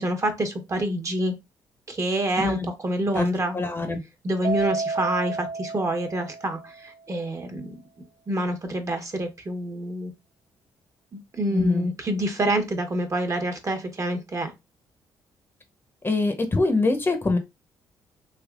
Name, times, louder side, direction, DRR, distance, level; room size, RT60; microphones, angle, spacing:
voice 1, 0.0-1.3 1.9-2.6 2.8-3.6 4.2-7.6 8.3-10.1 11.3-14.5, right 1 dB, 35° right, 0.9 m, -27 dB
voice 2, 2.4-2.7 3.1-3.3 3.5-4.0 11.5-11.9 16.0-17.4, left 3 dB, 25° left, 0.8 m, -24 dB
Keyboard (musical), 4.4-6.9, right 4 dB, 85° right, 0.6 m, -31 dB
3.5 x 3.0 x 2.4 m
cardioid pair, 70°, 9 cm